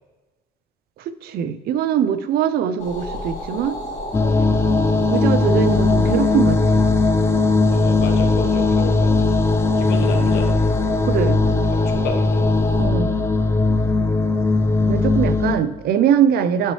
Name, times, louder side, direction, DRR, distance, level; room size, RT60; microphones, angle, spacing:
voice 1, 1.2-3.8 5.1-6.8 9.9-10.3 11.1-11.4 12.8-13.1 14.9-16.7, right 9 dB, 65° right, 12 dB, 0.5 m, -21 dB
sound 1, 2.8-12.9, left 1 dB, 40° left, 1.9 m, -33 dB
sound 2, 4.1-15.6, left 3 dB, 15° left, 0.4 m, -18 dB
voice 2, 7.7-9.3 9.7-10.6 11.7-12.5 12.8-12.9, left 4 dB, 75° left, 4 dB, 1.2 m, -32 dB
9.9 x 4.2 x 3.2 m, 1.2 s
cardioid pair, 110°, 17 cm